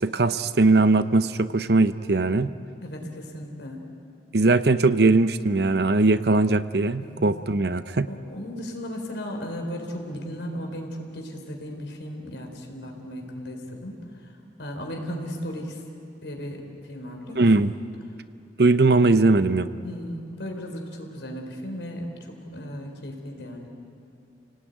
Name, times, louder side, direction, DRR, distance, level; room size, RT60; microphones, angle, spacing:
voice 1, 0.0-2.5 4.3-8.1 17.4-17.7 18.6-19.7, right 3 dB, 60° right, 12 dB, 0.8 m, -20 dB
voice 2, 2.8-3.8 7.0-7.2 8.1-14.0 14.6-15.8 16.2-17.4 19.8-23.7, equal, 75° left, 2 dB, 4.2 m, -36 dB
30.0 x 18.5 x 9.4 m, 2.5 s
head